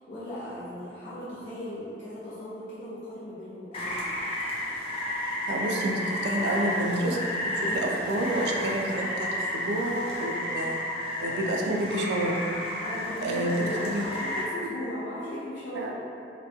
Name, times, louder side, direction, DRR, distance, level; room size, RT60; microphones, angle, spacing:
voice 1, 0.0-4.1 7.6-7.9 12.8-15.9, left 1 dB, 80° left, -11 dB, 0.5 m, -37 dB
Rain, 3.7-14.4, left 1 dB, 35° left, 0.3 m, -32 dB
voice 2, 5.5-7.2 7.4-9.3 9.5-10.8 11.2-12.4 13.2-13.6 13.8-14.0 15.7-15.9, right 1 dB, 70° right, 0 dB, 0.3 m, -29 dB
2.5 x 2.2 x 2.3 m, 2.6 s
head